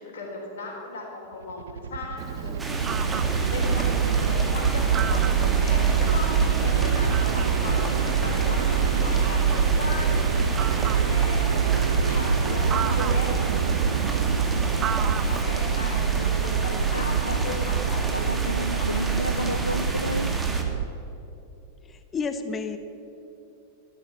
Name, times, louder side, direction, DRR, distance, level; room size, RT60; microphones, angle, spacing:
voice 1, 0.0-2.8 3.5-10.2 11.1-11.7 12.0-13.6 15.3-18.2 19.3-19.4, left 3 dB, 60° left, 4.4 m, -36 dB
sound 1, 1.4-20.8, right 7 dB, 65° right, 0.6 m, -24 dB
Fowl, 2.2-15.4, right 8 dB, 30° right, 0.7 m, -37 dB
sound 2, 2.6-20.6, right 2 dB, 10° right, 2.0 m, -33 dB
voice 2, 16.9-17.6 18.1-20.3, left 1 dB, 90° left, 0.5 m, -32 dB
voice 3, 21.9-22.8, left 4 dB, 20° left, 0.9 m, -31 dB
15.0 x 12.5 x 7.2 m
figure-of-eight pair, 90°, 0 cm